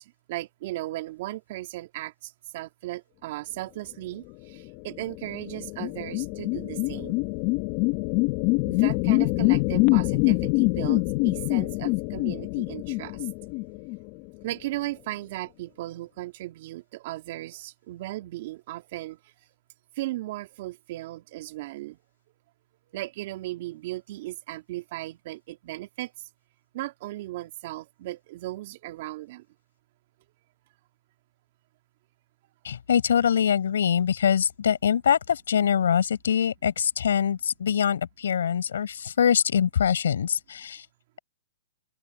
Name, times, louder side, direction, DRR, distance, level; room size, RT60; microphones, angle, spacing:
voice 1, 0.3-7.2 8.6-13.2 14.4-19.2 20.0-22.0 22.9-26.1 26.7-29.4, right 17 dB, 50° right, 2.3 m, -36 dB
sound 1, 4.7-14.4, left 25 dB, 40° left, 1.0 m, -25 dB
voice 2, 32.6-40.9, left 8 dB, 75° left, 4.9 m, -24 dB
open air
hypercardioid pair, 140°, 0 cm